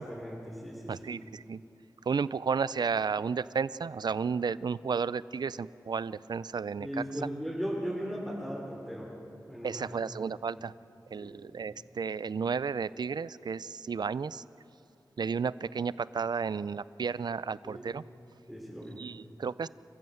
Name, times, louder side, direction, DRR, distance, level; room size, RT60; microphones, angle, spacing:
voice 1, 0.0-1.1 6.8-9.1 9.5-10.0 11.2-11.4 17.6-17.9 18.5-19.0, equal, ahead, -5 dB, 3.6 m, -37 dB
voice 2, 0.9-1.6 2.1-7.0 9.6-10.7 11.1-14.4 15.2-18.0 18.9-19.7, right 5 dB, 75° right, 18 dB, 0.4 m, -32 dB
28.0 x 15.0 x 7.8 m, 2.7 s
wide cardioid pair, 80°, 7 cm